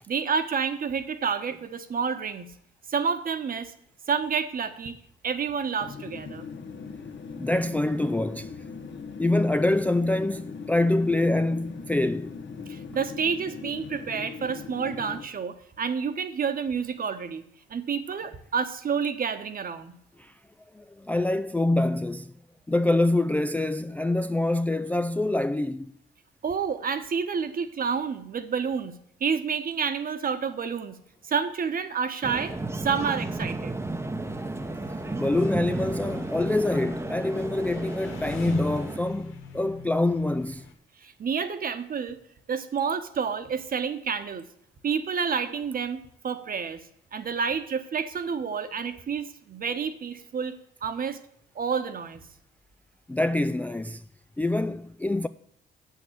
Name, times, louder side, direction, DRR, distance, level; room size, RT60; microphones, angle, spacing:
voice 1, 0.1-2.5 2.9-3.7 4.1-5.0 5.2-6.5 12.7-17.4 17.7-19.9 26.4-28.9 29.2-31.0 31.2-33.8 41.0-42.2 42.5-44.4 44.8-46.8 47.1-51.2 51.5-52.2, right 6 dB, 45° right, 1.1 m, -29 dB
sound 1, 5.8-15.3, left 5 dB, 65° left, 1.4 m, -40 dB
voice 2, 7.4-8.5 9.2-12.4 20.2-20.3 20.7-22.3 22.7-25.9 35.2-40.6 53.1-54.0 54.4-55.3, left 2 dB, 10° left, 0.3 m, -25 dB
sound 2, 32.2-39.0, right 2 dB, 15° right, 0.8 m, -33 dB
Engine, 34.2-40.7, left 4 dB, 85° left, 2.1 m, -42 dB
8.2 x 6.7 x 7.8 m
cardioid pair, 90°, 20 cm